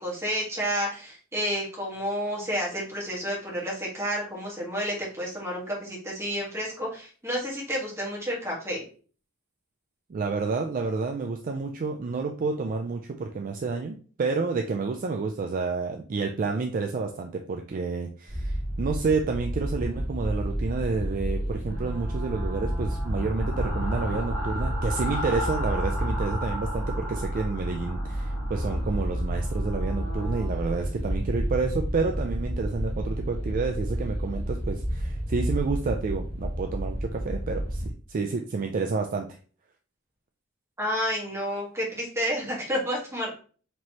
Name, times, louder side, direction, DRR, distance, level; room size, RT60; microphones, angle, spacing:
voice 1, 0.0-8.8 40.8-43.4, equal, 15° right, -4 dB, 1.4 m, -30 dB
voice 2, 10.1-39.3, right 4 dB, 40° right, 3 dB, 0.3 m, -29 dB
sound 1, 18.3-37.9, equal, 35° left, 1.9 m, -30 dB
sound 2, 21.7-30.5, equal, 85° left, 1.5 m, -37 dB
4.5 x 3.1 x 2.8 m, 0.40 s
head